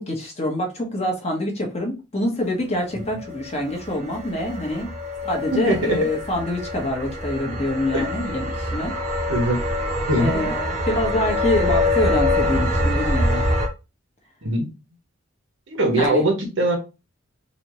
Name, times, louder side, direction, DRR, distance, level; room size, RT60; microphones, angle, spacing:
voice 1, 0.0-4.9 5.2-8.9 10.2-13.5 15.9-16.2, left 1 dB, 35° left, 1.1 m, -25 dB
sound 1, 3.1-13.7, left 1 dB, 35° right, 0.8 m, -25 dB
voice 2, 5.5-6.0 7.9-8.3 9.3-9.6 10.1-10.4 14.4-14.7 15.7-16.8, right 1 dB, 75° right, 1.2 m, -21 dB
4.2 x 2.7 x 3.1 m
head